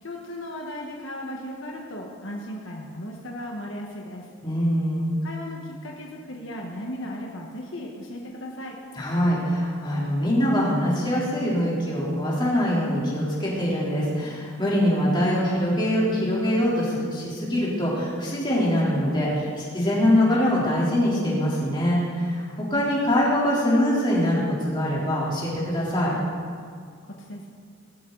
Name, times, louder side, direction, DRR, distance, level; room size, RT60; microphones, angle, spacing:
voice 1, 0.0-4.3 5.2-8.8 27.0-27.5, left 1 dB, 70° left, -1 dB, 1.5 m, -36 dB
voice 2, 4.4-5.2 9.0-26.2, equal, 20° left, -6 dB, 3.6 m, -23 dB
18.0 x 13.5 x 4.1 m, 2.1 s
head